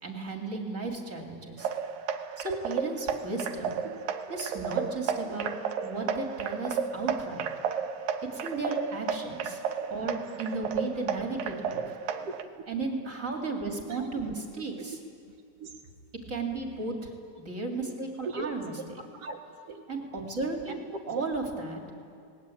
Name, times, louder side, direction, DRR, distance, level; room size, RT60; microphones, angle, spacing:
voice 1, 0.0-1.7 2.4-3.8 4.3-5.5 5.8-7.5 8.3-9.6 9.9-11.8 12.7-15.0 16.3-17.1 17.4-18.7 19.9-20.8 21.1-21.8, right 3 dB, 25° right, 2 dB, 2.6 m, -34 dB
sound 1, 1.6-12.4, right 7 dB, 80° right, 2.7 m, -33 dB
voice 2, 12.2-12.5 13.7-14.1 14.9-15.0 15.6-15.8 18.2-18.5 19.1-19.8, right 3 dB, 55° right, 3 dB, 2.0 m, -41 dB
29.0 x 19.5 x 8.6 m, 2.4 s
omnidirectional pair, 4.2 m